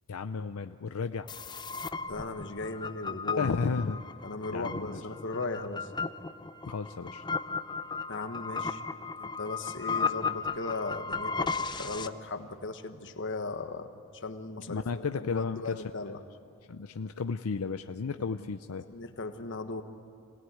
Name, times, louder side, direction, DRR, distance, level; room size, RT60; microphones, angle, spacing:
voice 1, 0.1-1.3 3.4-4.0 4.5-5.0 6.7-7.2 14.7-16.2 16.7-18.9, left 5 dB, 85° left, 8 dB, 0.6 m, -33 dB
sound 1, 1.3-12.1, left 5 dB, 20° left, 0.6 m, -35 dB
voice 2, 2.1-3.5 4.2-5.9 8.1-8.8 9.2-16.2 18.2-18.5 18.9-19.8, left 3 dB, 60° left, 7 dB, 1.3 m, -37 dB
26.0 x 17.5 x 9.5 m, 2.5 s
head